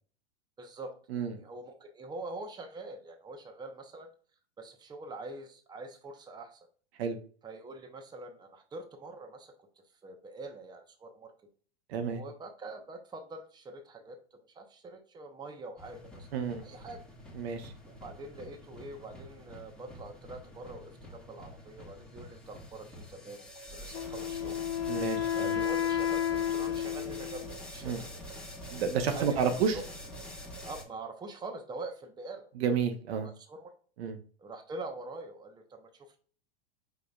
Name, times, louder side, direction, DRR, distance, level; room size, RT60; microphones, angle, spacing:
voice 1, 0.6-4.1 4.6-6.7 7.4-11.3 12.1-16.3 16.6-17.0 17.8-24.6 25.3-28.4 29.1-29.8 30.6-32.5 33.2-33.7 34.4-36.2, right 2 dB, 15° right, 5 dB, 0.8 m, -45 dB
voice 2, 11.9-12.2 16.3-16.6 17.4-17.7 24.9-25.6 27.8-28.0 28.7-29.8 32.6-33.3 34.0-34.2, right 6 dB, 70° right, 7 dB, 0.9 m, -30 dB
sound 1, 15.8-30.8, equal, 5° left, 1.2 m, -46 dB
Wind instrument woodwind instrument, 23.9-27.5, left 10 dB, 55° left, 1.1 m, -31 dB
5.0 x 3.8 x 2.3 m, 0.42 s
hypercardioid pair, 105°, 32 cm